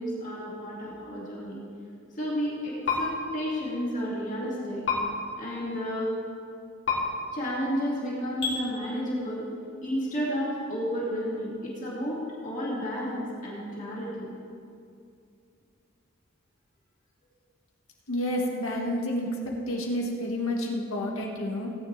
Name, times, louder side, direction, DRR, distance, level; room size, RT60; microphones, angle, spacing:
voice 1, 0.0-1.6 2.1-4.9 5.4-6.1 7.3-9.5 9.8-14.3, equal, 35° left, -6 dB, 2.3 m, -32 dB
sound 1, 2.8-3.0 4.8-5.0 6.8-7.0 8.4-8.5, left 6 dB, 55° left, 2.9 m, -26 dB
voice 2, 18.1-21.7, left 1 dB, 75° left, -1 dB, 1.8 m, -30 dB
17.5 x 9.7 x 3.4 m, 2.4 s
head